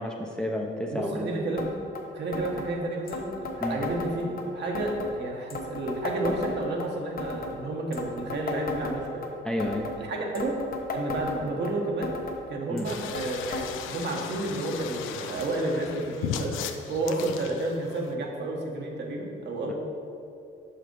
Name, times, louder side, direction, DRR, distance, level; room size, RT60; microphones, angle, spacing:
voice 1, 0.0-1.3 3.6-3.8 9.4-9.9 12.7-12.9, left 1 dB, 5° left, 1 dB, 0.6 m, -30 dB
voice 2, 0.9-1.7 2.1-3.3 3.6-9.3 10.0-10.6 10.9-12.1 12.5-16.5 16.9-19.7, right 2 dB, 60° right, 0 dB, 1.1 m, -31 dB
sound 1, 1.6-1.7 2.0-2.1 2.3-2.7 3.1-4.4 4.8-5.1 5.5-6.9 7.2-7.6 7.9-9.3 9.6-10.0 10.4-11.7 12.0-12.4 12.8-13.3 13.5-13.7 13.9-14.0 14.8-14.9 15.7-15.8, left 3 dB, 50° left, 0.9 m, -35 dB
sound 2, 12.8-18.1, left 8 dB, 85° left, 0.4 m, -37 dB
5.7 x 5.0 x 4.6 m, 2.5 s
cardioid pair, 90°, 20 cm